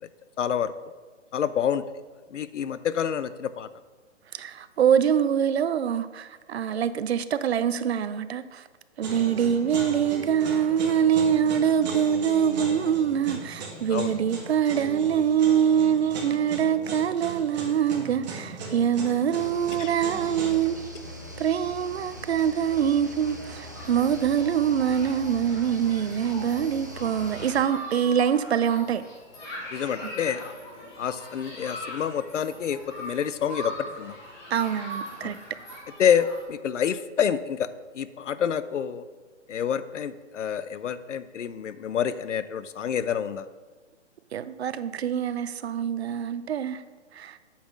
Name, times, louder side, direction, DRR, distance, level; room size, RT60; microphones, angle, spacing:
voice 1, 0.4-0.7 1.3-1.8 2.3-3.7 13.9-14.2 19.8-19.9 29.7-30.5 31.0-34.2 35.2-35.4 36.0-37.7 37.9-39.0 39.5-43.5, left 8 dB, 80° left, 0.7 m, -27 dB
voice 2, 4.3-8.7 9.0-21.0 21.4-29.0 34.5-35.4 44.3-46.8 47.1-47.4, right 8 dB, 60° right, 0.6 m, -24 dB
sound 1, 9.0-20.5, right 3 dB, 35° right, 1.7 m, -38 dB
sound 2, 19.3-27.6, equal, 15° right, 0.4 m, -41 dB
Human group actions, 23.8-36.4, equal, 10° left, 0.9 m, -41 dB
8.5 x 5.8 x 6.1 m
hypercardioid pair, 165°, 36 cm